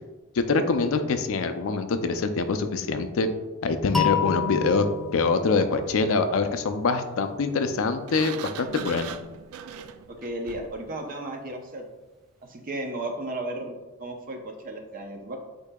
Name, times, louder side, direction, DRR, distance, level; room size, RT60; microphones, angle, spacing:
voice 1, 0.3-3.3 3.6-4.8 5.1-9.2, left 4 dB, 65° left, 9 dB, 0.4 m, -24 dB
sound 1, 3.9-6.9, left 6 dB, ahead, 0.4 m, -30 dB
Sliding door, 8.1-10.8, right 8 dB, 80° right, 0.3 m, -39 dB
voice 2, 10.2-11.8 12.5-15.4, right 1 dB, 40° right, 3 dB, 0.6 m, -34 dB
8.1 x 2.7 x 2.3 m, 1.1 s
head